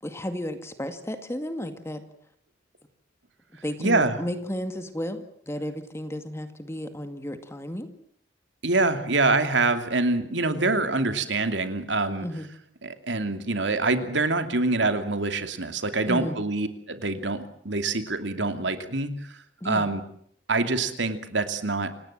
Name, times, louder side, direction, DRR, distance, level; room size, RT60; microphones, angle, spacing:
voice 1, 0.0-2.0 3.6-7.9 12.2-12.5 16.1-16.4 19.6-19.9, equal, 15° left, 8 dB, 2.1 m, -33 dB
voice 2, 3.8-4.1 8.6-12.3 12.8-19.2 19.6-20.0 20.5-22.0, right 3 dB, 75° right, 8 dB, 2.7 m, -25 dB
28.5 x 18.0 x 7.6 m, 0.64 s
head